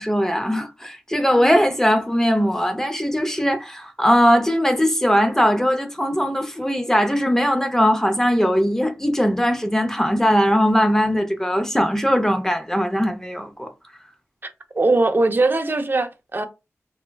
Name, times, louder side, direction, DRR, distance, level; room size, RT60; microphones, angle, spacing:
voice 1, 0.0-13.7, equal, 10° left, 0.6 m, -20 dB
voice 2, 14.7-16.5, right 2 dB, 40° right, 0.5 m, -20 dB
3.4 x 2.1 x 2.2 m
cardioid pair, 45°, 5 cm